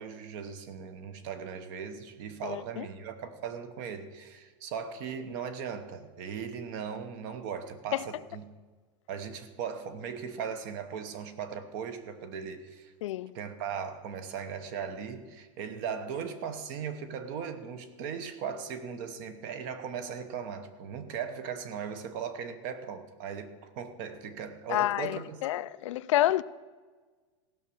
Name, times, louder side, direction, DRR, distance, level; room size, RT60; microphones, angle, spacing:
voice 1, 0.0-8.4 9.1-12.9 13.3-25.4, right 7 dB, 35° right, 0.9 m, -38 dB
voice 2, 2.4-2.9 7.9-8.0 13.0-13.4 24.7-26.4, left 14 dB, 65° left, 0.4 m, -29 dB
15.5 x 6.0 x 6.9 m
supercardioid pair, 175°, 17 cm